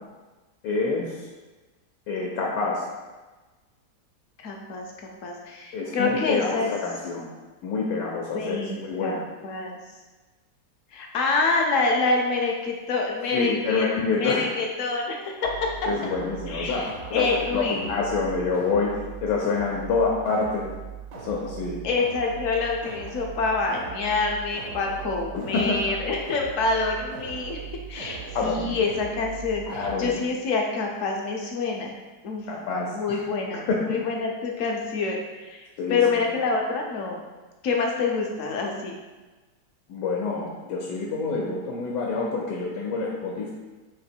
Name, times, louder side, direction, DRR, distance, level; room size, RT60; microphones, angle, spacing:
voice 1, 0.6-1.3 2.1-2.9 5.7-7.3 7.6-9.2 13.3-14.5 15.9-16.8 17.1-20.6 21.1-21.8 25.3-25.8 28.3-28.8 29.6-30.2 32.5-33.2 33.7-34.0 35.8-36.2 39.9-43.5, left 4 dB, 85° left, -2 dB, 1.3 m, -27 dB
voice 2, 4.4-6.7 8.3-9.2 9.4-9.8 10.9-13.9 14.2-15.3 16.5-17.8 21.8-27.6 27.9-31.9 32.2-32.5 32.9-35.2 35.5-37.3 37.6-38.9, left 4 dB, 65° left, 0 dB, 0.8 m, -26 dB
sound 1, 15.4-30.1, right 7 dB, 85° right, 1.3 m, -39 dB
4.0 x 2.9 x 4.3 m, 1.2 s
omnidirectional pair, 1.8 m